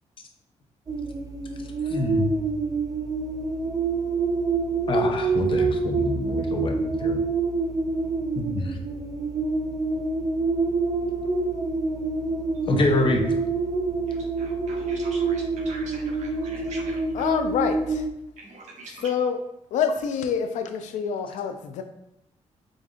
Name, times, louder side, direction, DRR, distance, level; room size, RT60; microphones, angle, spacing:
sound 1, 0.9-18.1, right 3 dB, 30° right, 0.3 m, -27 dB
voice 1, 1.9-2.3 4.9-7.2 8.4-8.8 12.7-13.2, left 2 dB, 45° left, 3 dB, 0.6 m, -26 dB
voice 2, 14.1-17.3 18.4-19.1, right 3 dB, 75° right, -1 dB, 0.9 m, -44 dB
voice 3, 17.1-18.1 19.0-19.4 19.7-21.8, left 7 dB, 90° left, 7 dB, 0.4 m, -26 dB
5.1 x 2.4 x 2.4 m, 0.82 s
cardioid pair, 105°, 12 cm